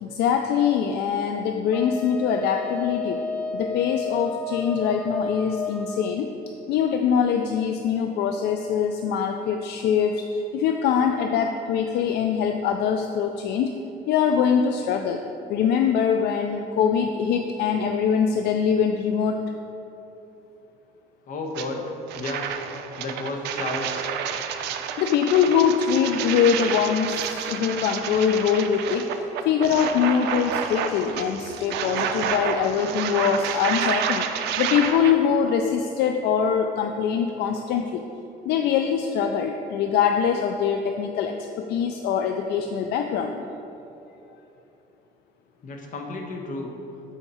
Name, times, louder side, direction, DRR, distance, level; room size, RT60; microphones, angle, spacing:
voice 1, 0.0-3.2 3.5-6.3 6.7-13.7 14.1-15.2 15.5-19.4 25.0-34.3 34.6-38.1 38.5-43.4, left 7 dB, 75° left, 5 dB, 0.4 m, -23 dB
Wind instrument woodwind instrument, 1.7-6.1, left 3 dB, 5° left, 0.6 m, -31 dB
voice 2, 21.3-21.8 22.2-22.5 23.0-24.1 45.6-46.7, left 2 dB, 50° left, 2 dB, 1.2 m, -32 dB
sound 1, 21.5-21.7 22.1-35.1, right 8 dB, 85° right, 0.5 m, -29 dB
7.2 x 4.8 x 5.5 m, 2.9 s
cardioid pair, 110°, 17 cm